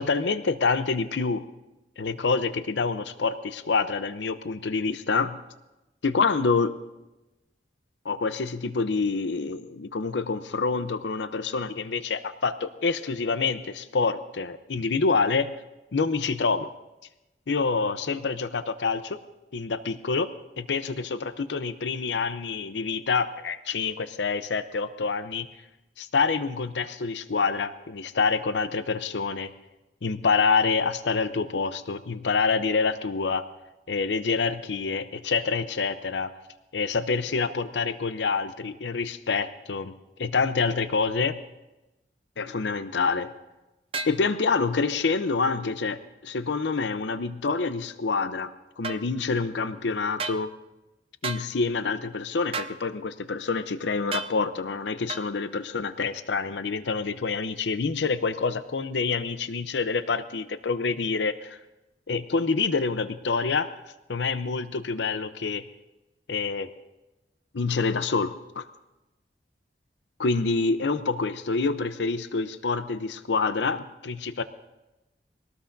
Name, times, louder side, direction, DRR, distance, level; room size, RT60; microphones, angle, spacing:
voice 1, 0.0-1.4 2.0-5.4 6.0-6.8 8.0-15.5 15.9-16.7 17.5-19.2 19.5-20.3 20.6-25.5 26.0-29.5 30.0-33.5 33.9-36.3 36.7-39.9 40.2-41.4 42.4-43.3 44.1-50.5 51.2-61.6 62.1-63.8 64.1-65.6 66.3-66.7 67.5-68.7 70.2-74.4, left 4 dB, 85° left, 12 dB, 0.6 m, -27 dB
sound 1, 43.9-44.2 48.8-49.0 50.2-50.4 51.2-51.5 52.5-52.8 54.1-54.3 55.1-55.3, right 4 dB, 30° right, 0.6 m, -32 dB
23.0 x 18.0 x 2.6 m, 1.0 s
head